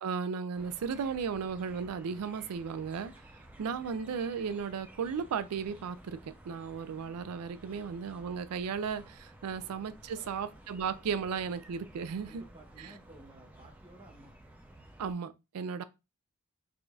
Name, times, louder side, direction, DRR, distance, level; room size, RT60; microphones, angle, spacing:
voice 1, 0.0-3.1 3.6-12.4 12.8-12.9 15.0-15.8, right 6 dB, 85° right, 0.4 m, -35 dB
sound 1, 0.5-15.1, right 1 dB, 10° right, 0.5 m, -54 dB
voice 2, 7.3-7.8 9.4-9.8 10.1-10.4 12.2-14.3, right 1 dB, 25° right, 0.9 m, -56 dB
4.8 x 2.6 x 2.3 m
head